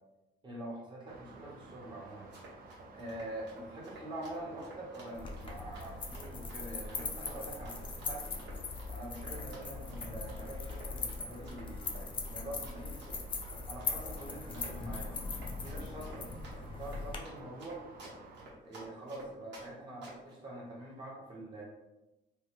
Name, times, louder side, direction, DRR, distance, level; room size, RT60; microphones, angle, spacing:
voice 1, 0.4-2.4 2.9-13.2 13.7-15.1 15.6-16.3 16.6-17.8 18.6-21.6, right 1 dB, 25° right, -5 dB, 1.0 m, -45 dB
sound 1, 1.1-18.5, right 3 dB, 50° right, 0.4 m, -54 dB
Run, 2.1-19.7 20.0-20.3, right 2 dB, 75° right, 1.1 m, -52 dB
sound 2, 5.1-17.2, left 4 dB, 30° left, 0.4 m, -40 dB
3.1 x 2.1 x 3.0 m, 1.0 s
cardioid pair, 135°, 19 cm